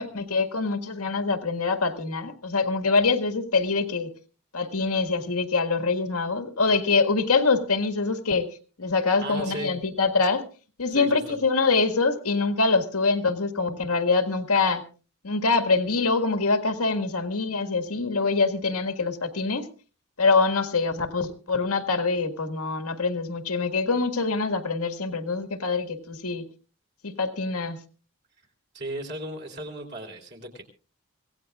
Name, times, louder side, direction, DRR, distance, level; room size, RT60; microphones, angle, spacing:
voice 1, 0.0-4.1 4.5-8.5 8.8-10.4 10.8-14.8 15.2-19.7 20.2-26.4 27.0-27.8, left 4 dB, 85° left, 7 dB, 1.8 m, -24 dB
voice 2, 9.2-9.7 10.9-11.4 28.7-30.6, right 1 dB, 50° right, 1 dB, 3.4 m, -36 dB
25.5 x 17.0 x 2.4 m, 0.36 s
head